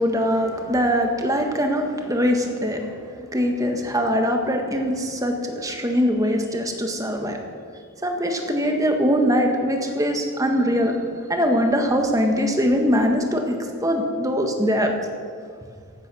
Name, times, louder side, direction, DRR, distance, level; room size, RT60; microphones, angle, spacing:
voice 1, 0.0-7.4 8.0-10.9 11.3-13.6 13.8-14.9, equal, 15° right, 3 dB, 1.6 m, -22 dB
15.5 x 12.0 x 6.3 m, 2.1 s
head